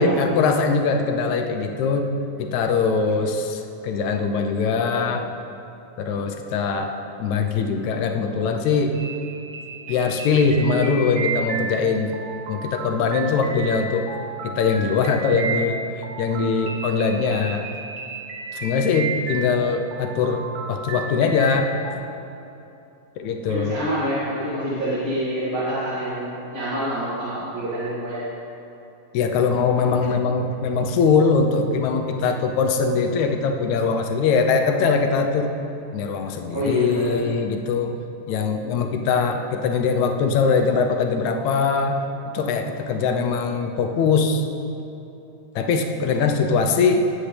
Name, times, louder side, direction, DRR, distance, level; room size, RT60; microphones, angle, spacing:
voice 1, 0.0-5.3 6.0-9.0 9.9-12.2 12.5-14.1 14.4-15.8 16.2-17.7 18.5-20.4 20.7-21.7 23.2-23.8 29.1-35.5 35.9-37.9 38.3-42.0 42.3-44.4 45.5-47.1, left 5 dB, 75° left, 4 dB, 1.8 m, -22 dB
sound 1, 8.9-21.9, right 4 dB, 75° right, 2.6 m, -33 dB
voice 2, 23.5-28.2 36.5-37.2, right 1 dB, 40° right, -10 dB, 2.9 m, -26 dB
20.0 x 8.8 x 3.4 m, 2.9 s
omnidirectional pair, 4.0 m